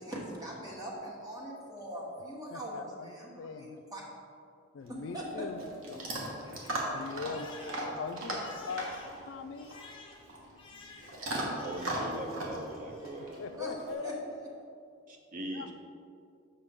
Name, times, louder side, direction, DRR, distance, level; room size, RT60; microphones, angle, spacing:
voice 1, 0.0-4.0 4.9-5.7 7.4-7.8 13.6-13.8 14.0-14.1, right 1 dB, 20° right, -4 dB, 1.2 m, -42 dB
voice 2, 2.5-3.8 4.7-5.6 5.9-6.0 6.9-7.5 7.8-8.9 9.2-9.7 13.4-14.2 15.5-15.7, left 5 dB, 65° left, 8 dB, 0.3 m, -41 dB
Chewing mastication / Dog, 4.8-13.9, right 1 dB, 90° right, 1.2 m, -38 dB
Crying sobbing, 5.6-12.4 12.7-13.3, left 3 dB, 25° left, 0.9 m, -54 dB
voice 3, 11.6-13.4 15.1-15.7, right 1 dB, 40° right, 2 dB, 0.5 m, -40 dB
6.7 x 5.5 x 3.5 m, 2.4 s
head